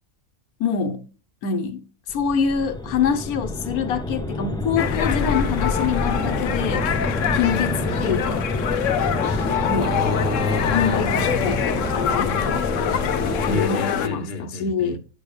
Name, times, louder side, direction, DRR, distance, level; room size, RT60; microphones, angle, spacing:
voice 1, 0.6-1.0 1.4-6.9 7.3-8.5 9.7-9.9 10.7-12.3 13.5-15.0, left 6 dB, 90° left, 1.2 m, -25 dB
sound 1, 2.1-13.6, left 2 dB, 5° left, 0.4 m, -27 dB
sound 2, 4.8-14.1, left 8 dB, 65° left, 1.0 m, -25 dB
voice 2, 9.2-11.0 13.5-14.9, left 4 dB, 45° left, 1.6 m, -28 dB
10.0 x 6.9 x 3.2 m
omnidirectional pair, 1.5 m